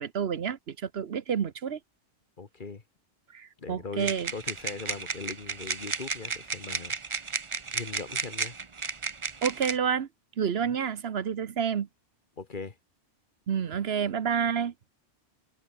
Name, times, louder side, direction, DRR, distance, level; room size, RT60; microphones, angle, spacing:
voice 1, 0.0-1.8 3.3-4.3 9.4-10.1 10.4-11.9 13.5-14.7, right 7 dB, 65° right, 1.1 m, -29 dB
voice 2, 2.4-2.8 3.6-6.9 7.7-8.6 10.7-10.8 12.4-12.7, left 4 dB, 45° left, 1.6 m, -40 dB
sound 1, 4.0-9.8, right 4 dB, 30° right, 0.8 m, -34 dB
omnidirectional pair, 1.2 m